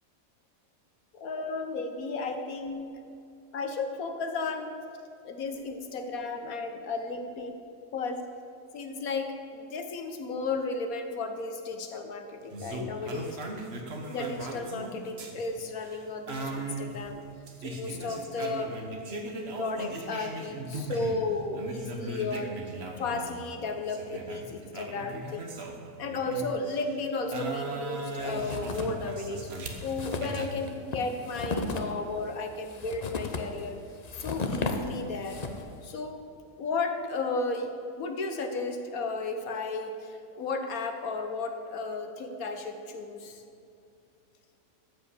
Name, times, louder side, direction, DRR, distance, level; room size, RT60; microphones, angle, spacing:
voice 1, 1.1-3.0 3.5-4.8 5.2-7.6 7.9-8.2 8.7-13.4 14.1-17.2 17.6-18.7 19.6-22.6 23.0-25.6 26.0-29.5 29.8-33.8 34.1-35.4 35.8-36.2 36.6-43.4, left 3 dB, 75° left, 6 dB, 1.5 m, -34 dB
sound 1, 12.5-21.2 21.5-26.8 27.3-30.5, right 2 dB, 50° right, 1.4 m, -38 dB
sound 2, 28.2-29.1 29.4-29.5 29.7-35.8, left 3 dB, 35° left, 0.7 m, -35 dB
14.0 x 5.2 x 8.3 m, 2.6 s
omnidirectional pair, 1.5 m